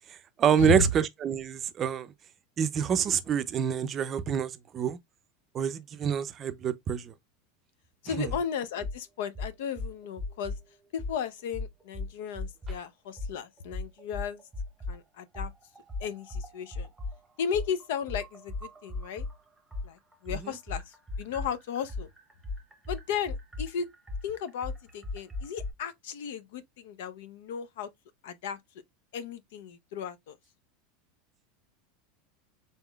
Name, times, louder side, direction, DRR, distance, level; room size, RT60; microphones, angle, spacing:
voice 1, 0.1-2.1 2.6-5.0 5.5-7.1 8.2-8.3 20.4-20.5, right 8 dB, 30° right, 0.5 m, -27 dB
voice 2, 8.0-10.6 10.9-14.4 14.9-15.5 16.0-16.9 17.4-19.3 19.8-22.1 22.9-23.9 24.2-27.9 28.2-28.6 29.1-30.4, left 7 dB, 75° left, 0.6 m, -35 dB
sound 1, 8.3-8.4 8.8-9.0 9.3-10.6 11.0-11.2 11.5-12.8 13.2-13.3 13.7-15.0 15.3-19.3 19.7-25.7, left 3 dB, 5° right, 0.9 m, -36 dB
4.1 x 3.6 x 2.3 m
supercardioid pair, 140°, 0 cm